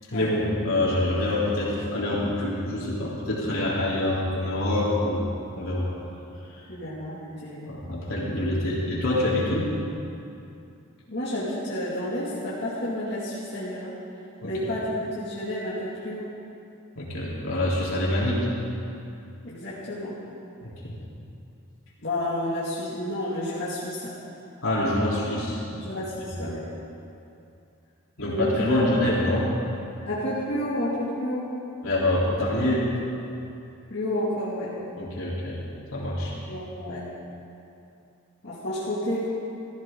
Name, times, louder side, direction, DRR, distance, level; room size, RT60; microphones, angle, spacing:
voice 1, 0.1-5.3 5.6-5.9 7.7-9.7 14.4-14.5 17.0-18.4 20.6-20.9 24.6-25.6 28.2-29.5 31.8-32.9 35.0-35.6 35.9-36.3, left 1 dB, 75° left, -6 dB, 3.6 m, -25 dB
voice 2, 6.7-7.7 11.1-14.0 14.4-16.3 19.4-20.2 22.0-24.2 25.7-26.7 28.2-29.0 30.1-31.5 33.9-34.8 36.5-37.1 38.4-39.3, left 1 dB, 50° left, -10 dB, 2.4 m, -30 dB
16.0 x 14.5 x 3.9 m, 2.7 s
head